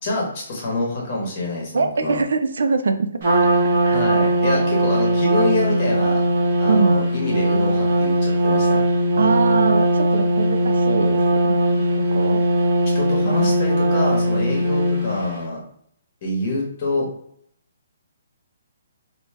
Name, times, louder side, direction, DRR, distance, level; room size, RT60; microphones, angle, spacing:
voice 1, 0.0-2.2 3.9-6.2 6.6-8.8 12.9-15.6 16.2-17.1, left 2 dB, 30° left, -3 dB, 1.2 m, -26 dB
voice 2, 1.7-3.1 3.8-4.3 6.6-7.0 9.2-12.4 13.2-13.6, right 4 dB, 75° right, 8 dB, 0.4 m, -23 dB
Trumpet, 3.2-15.3, right 1 dB, 40° right, 1.2 m, -19 dB
3.1 x 2.7 x 3.2 m, 0.66 s
hypercardioid pair, 175°, 0 cm